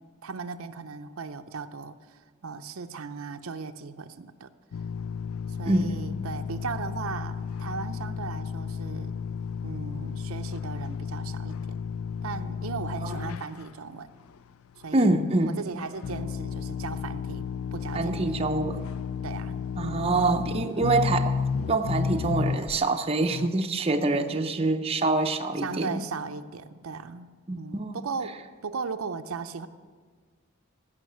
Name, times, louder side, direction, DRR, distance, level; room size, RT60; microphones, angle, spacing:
voice 1, 0.2-4.5 5.5-9.2 9.6-11.8 12.2-14.1 14.8-15.1 15.6-18.2 19.2-20.0 24.1-24.4 25.6-27.3 27.6-29.7, right 5 dB, 85° right, 9 dB, 0.6 m, -37 dB
sound 1, 4.7-13.7 14.4-14.5 14.8-14.9 16.0-22.9 23.3-23.5, left 6 dB, 75° left, 0.3 m, -32 dB
voice 2, 5.7-6.0 13.0-13.4 14.9-15.5 17.9-18.8 19.8-21.4 21.7-26.0 27.5-28.0, right 2 dB, 30° right, 6 dB, 0.6 m, -25 dB
15.5 x 5.8 x 7.8 m, 1.5 s
head